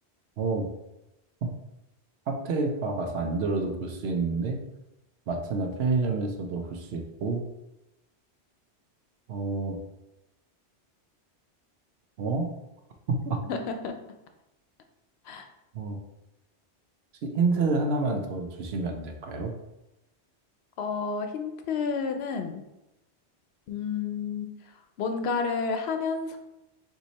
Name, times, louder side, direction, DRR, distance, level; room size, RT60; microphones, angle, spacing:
voice 1, 0.4-0.7 1.4-1.5 2.3-4.6 5.3-7.4 9.3-9.8 12.2-12.5 13.1-13.4 15.7-16.0 17.2-19.5, right 3 dB, 70° right, 4 dB, 0.9 m, -28 dB
voice 2, 13.4-14.0 15.3-15.5 20.8-22.6 23.7-24.5 25.0-26.4, left 5 dB, 70° left, 6 dB, 0.8 m, -30 dB
4.5 x 2.7 x 4.1 m, 0.92 s
omnidirectional pair, 1.1 m